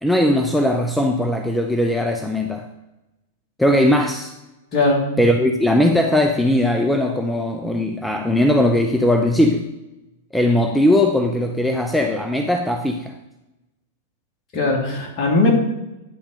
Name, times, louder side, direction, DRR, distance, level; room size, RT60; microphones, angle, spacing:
voice 1, 0.0-2.7 3.6-4.3 5.2-9.6 10.3-13.1, left 1 dB, 5° left, 4 dB, 0.6 m, -19 dB
voice 2, 4.7-5.0 14.5-15.6, left 3 dB, 35° left, 0 dB, 2.7 m, -18 dB
10.0 x 4.3 x 6.5 m, 0.97 s
figure-of-eight pair, 100°, 0 cm